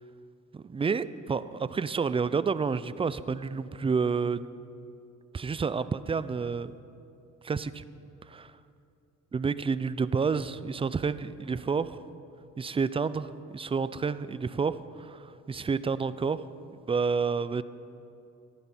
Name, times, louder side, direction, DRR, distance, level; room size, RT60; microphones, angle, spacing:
voice 1, 0.5-4.5 5.3-6.8 7.4-7.8 8.2-8.6 9.3-12.0 12.6-16.4 16.8-17.6, right 5 dB, 20° right, 15 dB, 0.4 m, -29 dB
14.5 x 11.5 x 4.3 m, 2.6 s
cardioid pair, 90°, 30 cm